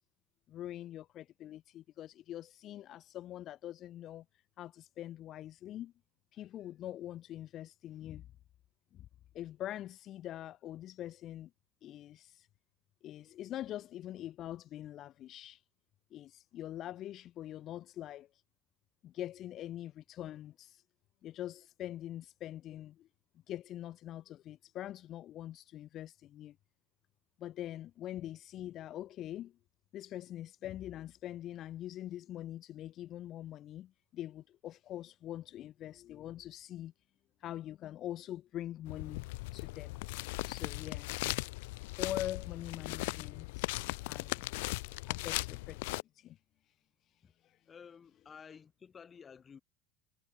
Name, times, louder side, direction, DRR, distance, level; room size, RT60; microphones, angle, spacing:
voice 1, 0.5-4.2 4.6-5.9 6.3-8.3 8.9-9.1 9.3-11.5 11.8-12.5 13.0-15.6 16.1-18.4 19.0-20.8 21.2-23.1 23.5-26.6 27.4-29.5 29.9-36.9 37.4-39.3 39.5-39.9 40.5-41.1 41.9-44.5 45.1-46.4 47.4-47.6, left 12 dB, 50° left, 3.9 m, -44 dB
sound 1, 38.9-46.0, left 23 dB, 80° left, 1.8 m, -38 dB
voice 2, 47.7-49.6, left 6 dB, 30° left, 6.7 m, -53 dB
supercardioid pair, 105°, 0 cm